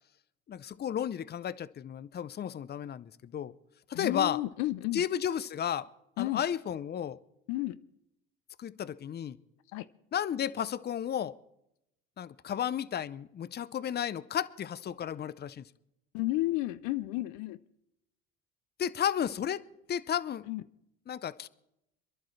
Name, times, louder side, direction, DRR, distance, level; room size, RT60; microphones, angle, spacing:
voice 1, 0.5-3.5 3.9-4.4 4.9-5.9 6.2-7.2 8.6-9.4 10.1-11.3 12.2-15.6 18.8-19.6 19.9-20.5 21.1-21.5, left 9 dB, 35° left, 0.6 m, -33 dB
voice 2, 3.9-5.0 6.2-6.4 7.5-7.8 9.7-9.9 16.1-17.6 20.5-20.6, left 17 dB, 80° left, 0.5 m, -32 dB
27.0 x 11.5 x 3.2 m
supercardioid pair, 75°, 30 cm